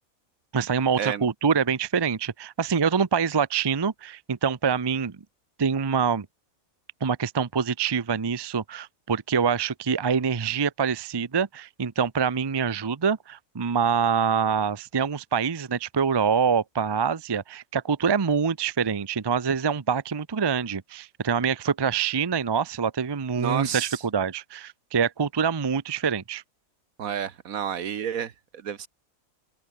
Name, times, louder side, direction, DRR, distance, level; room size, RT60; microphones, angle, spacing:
voice 1, 0.5-5.2 5.6-6.3 7.0-26.4, right 6 dB, 30° right, 0.5 m, -25 dB
voice 2, 23.4-24.0 27.0-28.9, right 8 dB, 75° right, 1.6 m, -30 dB
omnidirectional pair, 1.5 m